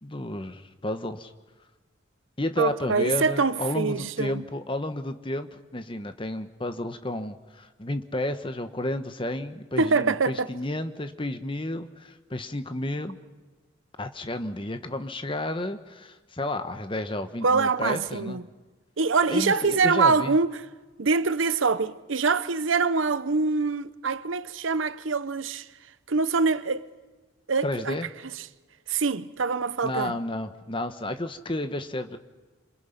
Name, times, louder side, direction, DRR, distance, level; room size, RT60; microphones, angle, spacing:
voice 1, 0.0-1.3 2.4-13.2 14.0-18.4 19.3-20.4 27.6-28.1 29.8-32.2, left 1 dB, 25° left, 1.2 m, -31 dB
voice 2, 2.6-4.4 9.8-10.5 17.4-18.5 19.0-20.6 21.0-25.7 26.1-26.9 27.5-28.0 28.3-28.5 28.9-30.2, right 4 dB, 80° right, 0.9 m, -24 dB
27.5 x 27.0 x 5.8 m
head